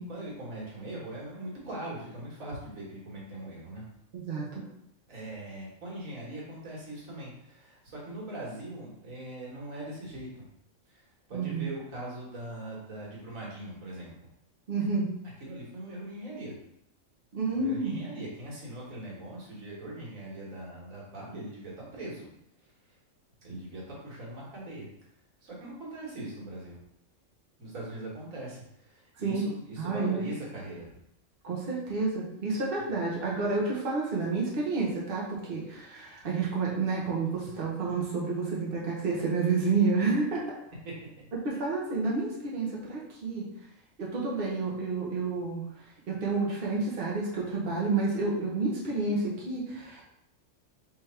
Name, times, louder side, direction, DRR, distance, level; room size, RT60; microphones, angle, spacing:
voice 1, 0.1-3.8 5.1-10.4 10.9-14.1 14.8-14.9 15.4-16.5 17.5-22.3 23.4-24.9 25.4-26.8 27.6-30.9 32.8-32.9 40.9-41.0, right 1 dB, 90° right, -5 dB, 1.9 m, -41 dB
voice 2, 4.1-4.6 11.3-11.6 14.7-15.1 17.3-18.0 29.2-29.5 29.8-30.2 31.4-40.5 41.4-43.5 44.0-45.6 46.1-50.0, right 3 dB, 50° right, -4 dB, 1.2 m, -30 dB
3.5 x 3.4 x 4.3 m, 0.77 s
omnidirectional pair, 1.4 m